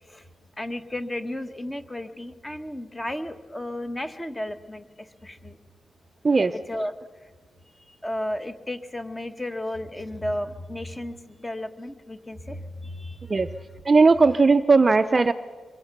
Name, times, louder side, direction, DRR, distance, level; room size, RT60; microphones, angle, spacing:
voice 1, 0.6-5.6 6.7-6.9 7.9-13.6, left 1 dB, 15° left, 8 dB, 1.2 m, -33 dB
voice 2, 13.8-15.3, right 4 dB, 25° right, 10 dB, 0.6 m, -18 dB
24.5 x 22.5 x 6.0 m, 1.4 s
wide cardioid pair, 140°, 0 cm